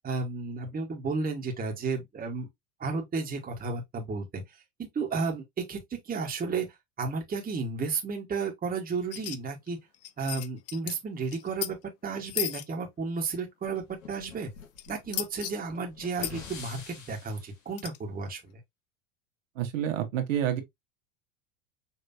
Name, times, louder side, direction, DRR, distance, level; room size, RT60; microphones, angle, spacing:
voice 1, 0.0-2.5 2.8-9.8 10.2-11.8 12.0-13.8 14.1-14.5 14.9-18.6, right 4 dB, 20° right, 1.6 m, -33 dB
sound 1, 9.1-9.4 9.7-9.8 9.9-11.0 11.3-11.7 12.3-12.6 14.8-15.5 16.2-16.3 17.8-18.0, left 13 dB, 40° left, 0.6 m, -34 dB
sound 2, 13.7-17.5, left 6 dB, 85° left, 2.1 m, -47 dB
voice 2, 19.6-20.6, right 10 dB, 75° right, 1.7 m, -28 dB
5.8 x 3.2 x 2.7 m
hypercardioid pair, 100°, 39 cm